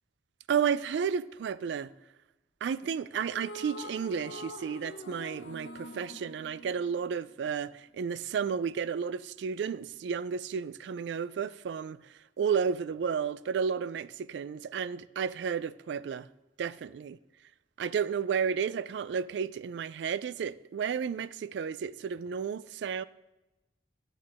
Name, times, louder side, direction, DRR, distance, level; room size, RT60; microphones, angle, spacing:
voice 1, 0.5-1.9 2.6-16.3 16.6-17.2 17.8-23.0, right 7 dB, 75° right, 0.3 m, -32 dB
sound 1, 3.2-7.6, left 1 dB, 85° left, 1.0 m, -45 dB
10.5 x 8.7 x 3.6 m
head